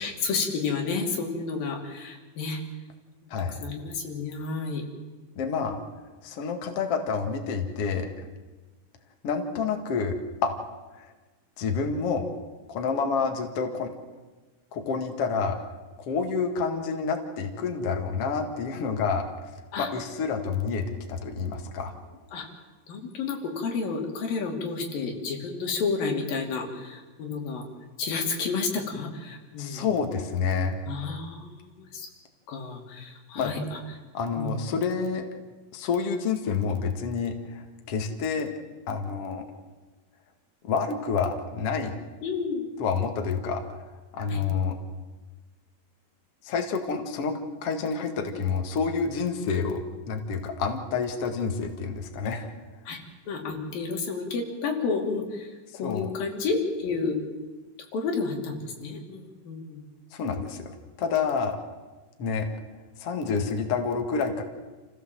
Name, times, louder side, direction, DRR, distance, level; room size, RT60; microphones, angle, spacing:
voice 1, 0.0-2.6 3.4-4.8 19.7-19.9 22.3-22.5 22.9-27.7 28.0-30.0 30.9-32.1 32.5-33.8 34.4-34.8 42.2-42.7 44.3-44.4 52.9-53.0 53.3-55.5 55.8-57.2 57.9-59.8, left 4 dB, 90° left, 2 dB, 4.6 m, -31 dB
voice 2, 5.4-5.8 6.2-8.1 9.2-10.5 11.0-11.1 11.6-12.3 12.7-13.9 14.7-15.6 16.0-19.2 19.8-21.9 29.6-30.8 33.3-33.5 34.1-35.2 35.7-38.5 38.9-39.4 40.6-42.0 42.8-43.6 44.1-44.8 46.4-52.5 55.7-56.1 60.1-60.7 61.0-61.6 62.2-62.5 63.0-64.4, left 5 dB, 50° left, 4 dB, 2.6 m, -28 dB
29.0 x 16.0 x 7.7 m, 1.3 s
omnidirectional pair, 4.0 m